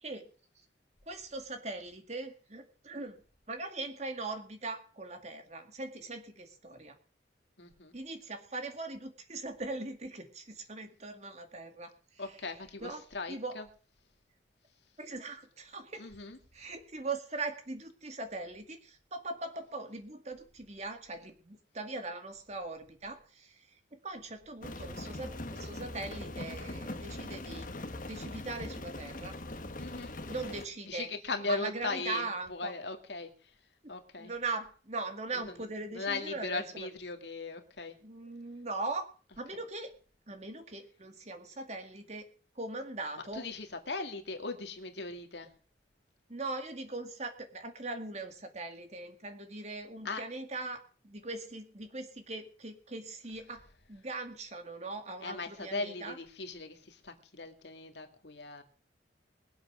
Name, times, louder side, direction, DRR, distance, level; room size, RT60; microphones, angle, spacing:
voice 1, 1.1-3.2 3.5-7.0 7.9-12.4 12.8-13.5 15.0-16.1 16.5-27.7 28.0-29.4 30.3-31.1 31.5-32.7 33.8-36.9 38.0-39.1 39.4-39.9 40.3-42.3 42.6-43.5 46.3-53.6 53.9-56.2, right 3 dB, 40° right, 6 dB, 2.2 m, -40 dB
voice 2, 7.6-7.9 12.2-13.6 16.0-16.4 29.8-30.1 30.9-33.5 33.9-34.3 35.5-35.7 35.9-38.0 43.3-45.5 50.0-50.2 55.2-58.6, left 3 dB, 75° left, 5 dB, 2.1 m, -38 dB
Rain, 24.6-30.7, left 2 dB, 45° left, 1.4 m, -41 dB
21.5 x 7.9 x 6.2 m, 0.41 s
head